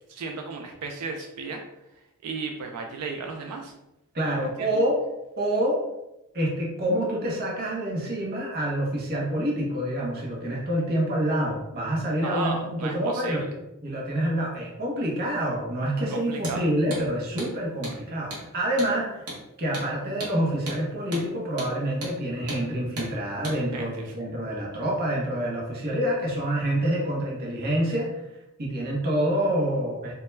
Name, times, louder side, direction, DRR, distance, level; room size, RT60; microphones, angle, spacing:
voice 1, 0.1-1.6 2.2-3.7 4.4-4.8 12.2-13.5 16.1-16.6 23.7-24.2, right 4 dB, 90° right, 2 dB, 0.3 m, -34 dB
voice 2, 4.1-5.0 5.4-5.8 6.3-13.4 13.8-19.2 19.6-28.1 28.6-30.1, right 1 dB, 45° right, -3 dB, 0.7 m, -27 dB
Hammer, 16.4-16.6 16.9-17.0 17.4-17.5 17.8-18.0 18.3-18.5 18.8-18.9 19.3-19.4 19.7-19.9 20.2-20.4 20.7-20.8 21.1-21.3 21.6-21.7 22.0-22.2 22.5-22.6 23.0-23.1 23.4-23.6, right 1 dB, 75° right, 0.9 m, -35 dB
2.2 x 2.1 x 3.1 m, 0.93 s
head